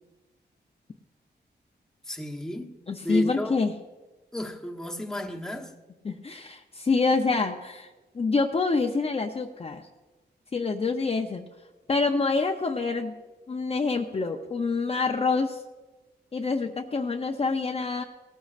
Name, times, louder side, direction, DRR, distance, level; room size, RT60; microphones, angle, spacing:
voice 1, 2.1-2.7 3.0-3.6 4.3-5.7, equal, 5° left, 1.0 m, -32 dB
voice 2, 2.9-3.7 6.0-9.9 10.5-11.4 11.9-13.1 13.5-15.6 16.3-18.0, left 4 dB, 35° left, 0.6 m, -26 dB
18.0 x 13.5 x 2.5 m
wide cardioid pair, 130°, 18 cm